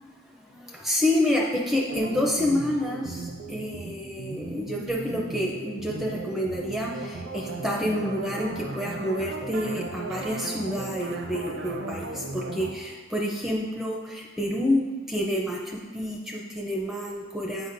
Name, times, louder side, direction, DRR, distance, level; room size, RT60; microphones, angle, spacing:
voice 1, 0.0-17.7, left 1 dB, ahead, -2 dB, 0.4 m, -28 dB
sound 1, 1.9-12.7, right 3 dB, 65° right, 0.5 m, -36 dB
8.2 x 4.9 x 2.5 m, 1.4 s
head